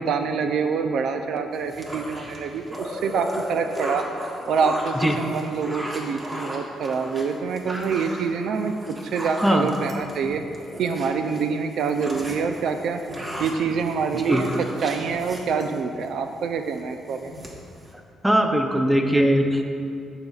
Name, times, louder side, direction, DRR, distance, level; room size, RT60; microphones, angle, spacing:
voice 1, 0.0-8.7 9.0-10.4 10.8-17.5, right 5 dB, 70° right, 7 dB, 0.4 m, -26 dB
sound 1, 1.5-11.4 11.7-16.1 16.5-16.8 17.1-17.9, equal, 30° right, 1.2 m, -35 dB
voice 2, 18.2-19.7, equal, 5° right, 4 dB, 0.6 m, -20 dB
12.0 x 5.2 x 2.4 m, 2.5 s
cardioid pair, 90°, 0 cm